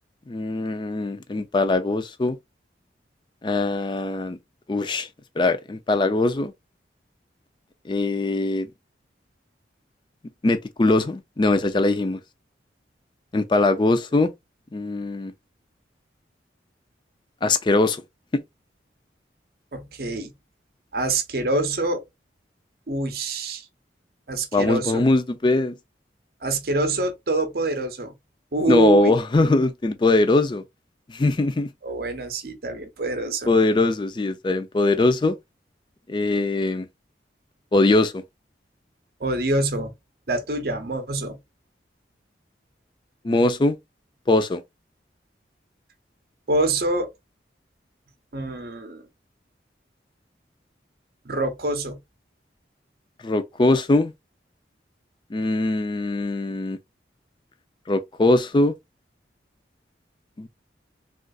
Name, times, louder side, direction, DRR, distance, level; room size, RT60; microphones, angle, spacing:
voice 1, 0.3-2.4 3.4-4.4 4.7-5.1 5.4-6.5 7.9-8.7 10.4-12.2 13.3-14.3 14.7-15.3 17.4-18.0 18.3-18.4 24.5-25.7 28.7-30.6 31.1-31.7 33.5-35.4 36.1-36.9 37.7-38.2 43.2-43.8 44.3-44.6 53.2-54.1 55.3-56.8 57.9-58.7 60.4-60.5, left 2 dB, 25° left, 0.3 m, -21 dB
voice 2, 19.7-20.3 20.9-22.0 22.9-23.6 24.3-25.0 26.4-28.1 28.5-29.1 31.8-33.5 39.2-39.9 40.3-41.4 46.5-47.1 48.3-49.0 51.2-52.0, right 2 dB, 55° right, 0.7 m, -25 dB
3.8 x 2.4 x 2.3 m
head